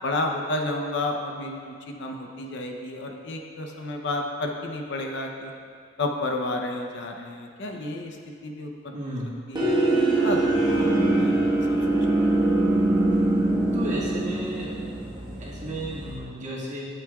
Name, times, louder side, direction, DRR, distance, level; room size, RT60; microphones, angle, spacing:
voice 1, 0.0-5.5 6.0-8.7 9.5-9.7 10.2-11.9, left 2 dB, 65° left, 2 dB, 0.7 m, -31 dB
voice 2, 8.9-9.3 13.7-14.7 15.4-16.9, equal, 40° right, -6 dB, 1.8 m, -33 dB
sound 1, 9.5-16.1, right 2 dB, 25° right, 1.4 m, -23 dB
12.0 x 7.7 x 2.4 m, 2.3 s
head